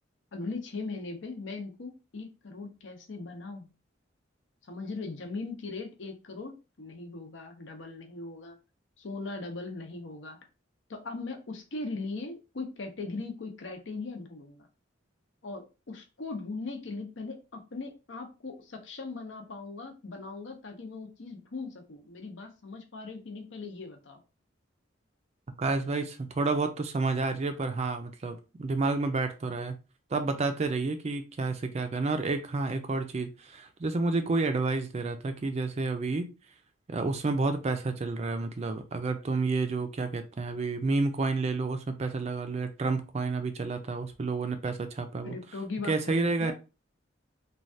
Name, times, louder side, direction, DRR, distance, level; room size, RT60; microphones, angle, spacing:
voice 1, 0.3-3.7 4.7-8.6 9.0-10.4 10.9-14.7 15.4-24.2 45.2-46.5, left 3 dB, 70° left, 4 dB, 0.7 m, -39 dB
voice 2, 25.6-29.8 30.1-36.3 36.9-45.4 45.9-46.5, right 3 dB, 35° right, 9 dB, 0.4 m, -30 dB
3.2 x 2.2 x 2.6 m, 0.30 s
head